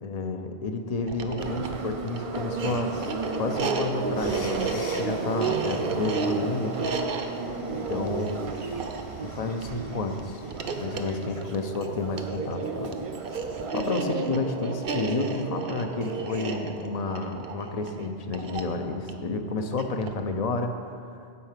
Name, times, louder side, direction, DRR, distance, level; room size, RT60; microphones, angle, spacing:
voice 1, 0.0-6.8 7.7-8.4 9.2-10.4 10.8-13.0 13.7-20.8, left 3 dB, 45° left, 6 dB, 0.7 m, -31 dB
sound 1, 1.0-20.3, right 4 dB, 60° right, 0.9 m, -33 dB
Subway metro underground, 1.4-13.9, right 4 dB, 40° right, 0.5 m, -35 dB
sound 2, 4.2-11.6 11.8-11.9 14.8-14.9, left 3 dB, 65° left, 1.2 m, -48 dB
8.4 x 5.7 x 7.4 m, 2.4 s
omnidirectional pair, 1.1 m